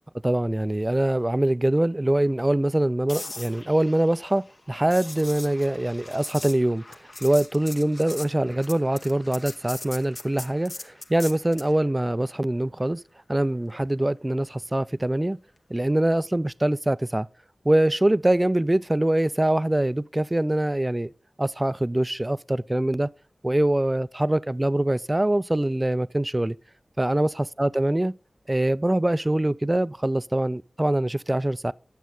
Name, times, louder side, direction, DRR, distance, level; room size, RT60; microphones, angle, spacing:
voice 1, 0.2-6.8 7.2-13.0 13.3-15.4 15.7-17.3 17.7-21.1 21.4-23.1 23.4-26.6 27.0-28.1 28.5-31.7, right 1 dB, 20° right, 0.3 m, -23 dB
sound 1, 3.1-11.8 15.9-16.2, left 2 dB, 45° left, 1.0 m, -41 dB
9.3 x 7.4 x 3.8 m
wide cardioid pair, 65°, 0 cm